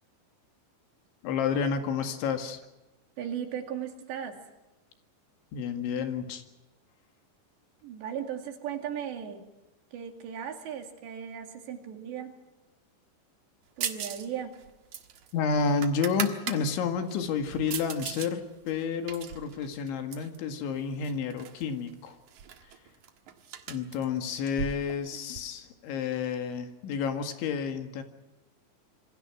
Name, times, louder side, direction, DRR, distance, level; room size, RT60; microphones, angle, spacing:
voice 1, 1.2-2.6 5.5-6.4 15.3-22.2 23.7-28.0, left 6 dB, 85° left, 6 dB, 4.3 m, -30 dB
voice 2, 3.2-4.4 7.8-9.4 9.9-12.3 13.8-14.5, right 8 dB, 70° right, 4 dB, 4.5 m, -37 dB
sound 1, 13.8-14.3 14.5-16.6 17.1-18.3 18.7-20.4 21.0-21.6 21.9-22.0 22.3-25.4, right 8 dB, 55° right, 2.2 m, -38 dB
27.0 x 23.0 x 6.1 m, 1.0 s
omnidirectional pair, 5.3 m